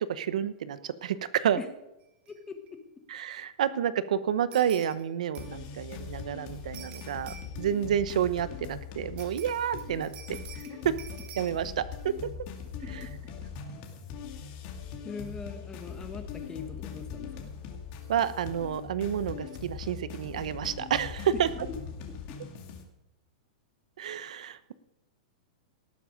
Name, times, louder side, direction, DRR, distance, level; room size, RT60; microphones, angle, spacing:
voice 1, 0.0-1.6 3.1-10.4 11.4-12.1 18.1-21.5 24.0-24.7, right 9 dB, 80° right, 14 dB, 0.9 m, -30 dB
voice 2, 2.3-3.0 10.3-10.7 12.8-13.1 15.0-17.5 21.5-21.6 22.1-22.4, left 5 dB, 15° left, 6 dB, 1.6 m, -43 dB
sound 1, 2.3-2.4 2.7-2.8 4.5-5.0 5.3-5.7 6.7-7.7 9.2-11.5, right 8 dB, 30° right, 1.6 m, -48 dB
sound 2, 5.4-22.8, left 6 dB, 45° left, 2.6 m, -41 dB
18.5 x 7.4 x 5.2 m, 0.91 s
supercardioid pair, 145°, 4 cm